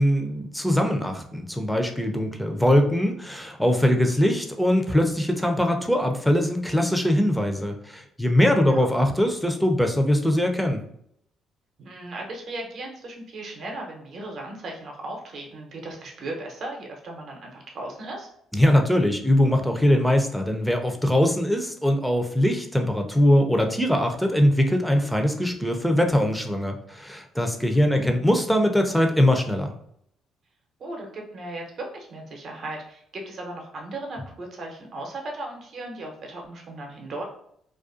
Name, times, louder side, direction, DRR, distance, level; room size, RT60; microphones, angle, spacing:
voice 1, 0.0-10.8 18.5-29.7, left 1 dB, 5° left, 4 dB, 0.5 m, -22 dB
voice 2, 11.8-18.3 27.7-28.1 30.8-37.2, right 2 dB, 60° right, 1 dB, 0.7 m, -37 dB
2.4 x 2.3 x 2.5 m, 0.71 s
hypercardioid pair, 55°, 0 cm